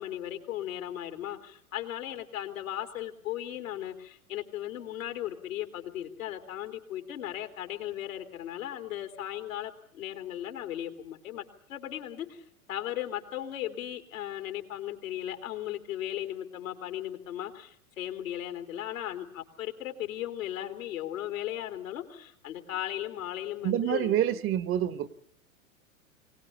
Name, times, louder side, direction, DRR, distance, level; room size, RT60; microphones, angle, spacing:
voice 1, 0.0-11.4 11.7-24.4, left 12 dB, 70° left, 6 dB, 3.3 m, -37 dB
voice 2, 23.6-25.1, right 11 dB, 30° right, 14 dB, 1.2 m, -27 dB
24.5 x 18.0 x 8.5 m, 0.64 s
hypercardioid pair, 100°, 42 cm